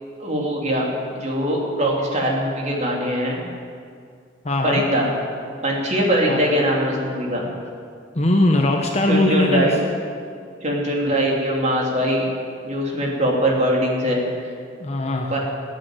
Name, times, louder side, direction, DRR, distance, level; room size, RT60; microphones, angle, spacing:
voice 1, 0.2-0.9 1.2-3.4 4.6-5.1 5.6-7.5 9.1-9.7 10.6-12.2 12.6-14.2 15.3-15.4, equal, 40° right, -1 dB, 3.2 m, -21 dB
voice 2, 4.4-4.8 6.3-6.4 8.1-9.7 14.8-15.3, left 2 dB, 35° left, 2 dB, 1.2 m, -20 dB
17.5 x 9.0 x 9.1 m, 2.2 s
head